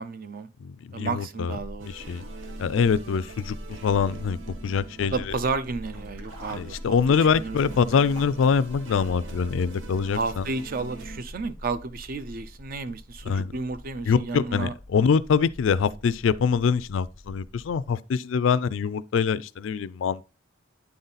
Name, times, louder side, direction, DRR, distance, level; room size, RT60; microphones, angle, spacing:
voice 1, 0.0-0.5 0.9-2.2 5.1-7.0 7.3-7.6 10.1-14.7, right 4 dB, 45° right, 0.5 m, -32 dB
voice 2, 0.6-1.6 1.8-2.2 2.6-4.4 4.6-5.4 6.5-10.5 13.2-13.5 14.1-20.3, left 6 dB, 70° left, 0.3 m, -24 dB
sound 1, 1.5-17.9, left 1 dB, 30° right, 1.8 m, -43 dB
sound 2, 1.8-11.2, right 4 dB, 70° right, 0.9 m, -44 dB
Sink (filling or washing), 5.8-10.8 11.1-11.2 12.2-12.3 12.6-12.7, right 2 dB, 85° right, 1.9 m, -48 dB
9.3 x 3.9 x 4.0 m
head